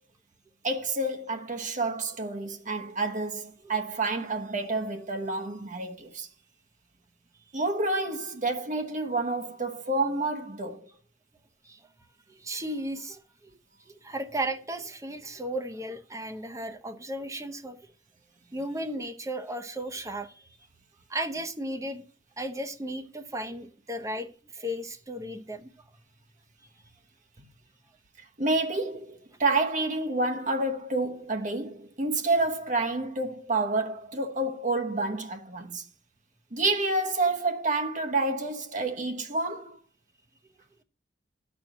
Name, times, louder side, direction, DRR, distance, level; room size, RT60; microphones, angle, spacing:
voice 1, 0.6-6.3 7.5-10.9 28.4-35.8 36.5-39.8, right 2 dB, 40° right, 1.0 m, -29 dB
voice 2, 12.3-13.5 13.9-17.8 18.5-20.4 21.1-22.1 22.4-25.7, right 1 dB, 15° right, 0.8 m, -35 dB
12.0 x 4.5 x 6.5 m
head